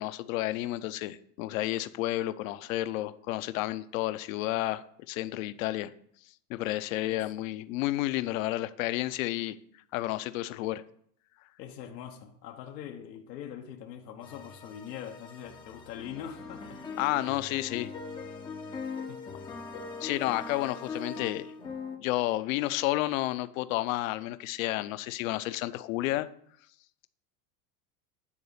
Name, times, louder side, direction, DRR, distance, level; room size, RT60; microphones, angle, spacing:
voice 1, 0.0-5.9 6.5-9.6 9.9-10.8 17.0-17.9 20.0-21.5 22.0-26.3, left 16 dB, 55° left, 0.7 m, -31 dB
voice 2, 11.6-16.8 19.1-19.2 20.6-20.7, left 9 dB, 90° left, 1.2 m, -43 dB
sound 1, 14.2-22.0, left 4 dB, 10° left, 0.4 m, -41 dB
9.9 x 3.9 x 6.7 m
supercardioid pair, 155°, 48 cm